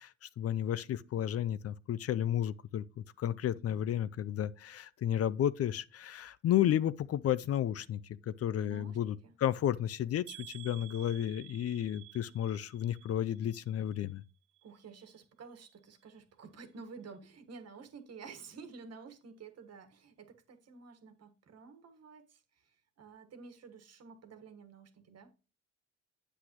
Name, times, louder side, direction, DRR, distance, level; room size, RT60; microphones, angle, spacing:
voice 1, 0.0-14.2, left 11 dB, 50° left, 0.5 m, -32 dB
voice 2, 8.6-9.0 9.2-9.3 14.6-25.3, right 5 dB, 55° right, 1.4 m, -51 dB
sound 1, 10.3-14.2 14.5-15.2 15.6-15.7 16.1-16.2, right 20 dB, 90° right, 0.7 m, -53 dB
8.2 x 7.9 x 2.9 m
cardioid pair, 90°, 30 cm